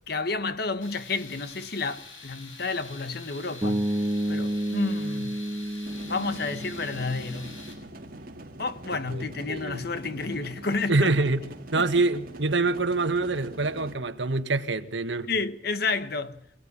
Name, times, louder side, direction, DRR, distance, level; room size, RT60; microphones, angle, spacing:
voice 1, 0.1-3.9 4.3-5.4 6.0-7.6 8.6-11.0 11.8-11.9 15.2-16.4, left 3 dB, 55° left, 1.2 m, -30 dB
Tools, 0.8-7.7, left 3 dB, 85° left, 7.1 m, -46 dB
Bass guitar, 3.6-7.7, right 1 dB, 15° right, 1.6 m, -30 dB
sound 1, 5.9-13.9, right 1 dB, 45° right, 2.4 m, -44 dB
voice 2, 9.1-9.8 10.9-11.5 11.7-15.3, right 3 dB, 65° right, 1.5 m, -25 dB
26.0 x 16.5 x 9.9 m
head